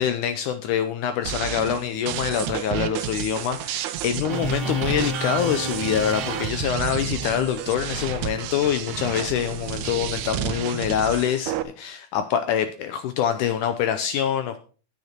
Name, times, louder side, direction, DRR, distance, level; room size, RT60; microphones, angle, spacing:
voice 1, 0.0-14.6, left 9 dB, 80° left, 9 dB, 1.9 m, -25 dB
sound 1, 1.3-11.6, right 12 dB, 80° right, 1.7 m, -31 dB
sound 2, 4.3-11.1, right 2 dB, 50° right, 1.9 m, -34 dB
10.0 x 9.5 x 4.4 m, 0.38 s
omnidirectional pair, 4.2 m